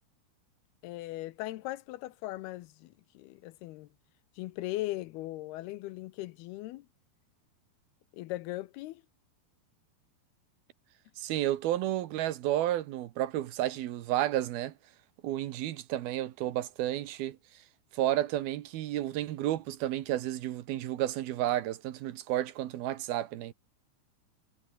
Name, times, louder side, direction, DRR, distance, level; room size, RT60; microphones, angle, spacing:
voice 1, 0.8-3.9 4.4-6.9 8.1-9.0, left 17 dB, 80° left, 2.6 m, -39 dB
voice 2, 11.2-14.7 15.2-17.4 17.9-23.5, right 13 dB, 70° right, 2.8 m, -31 dB
omnidirectional pair, 4.8 m